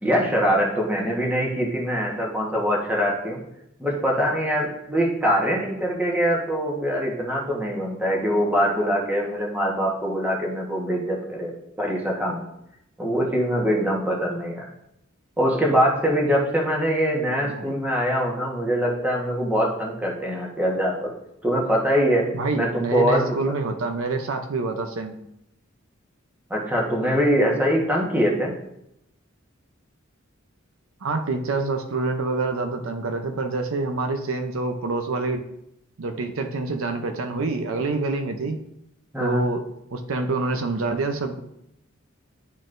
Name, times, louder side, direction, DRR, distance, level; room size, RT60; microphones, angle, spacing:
voice 1, 0.0-3.4 3.8-11.5 11.8-12.4 13.0-14.7 15.4-21.1 21.4-22.3 22.5-23.4 26.5-28.6 39.1-39.4, equal, 10° right, -2 dB, 1.2 m, -23 dB
voice 2, 17.3-17.7 22.3-25.1 31.0-35.4 36.0-38.6 39.2-39.6 39.9-41.4, right 3 dB, 70° right, 6 dB, 0.6 m, -26 dB
11.0 x 4.1 x 2.5 m, 0.80 s
head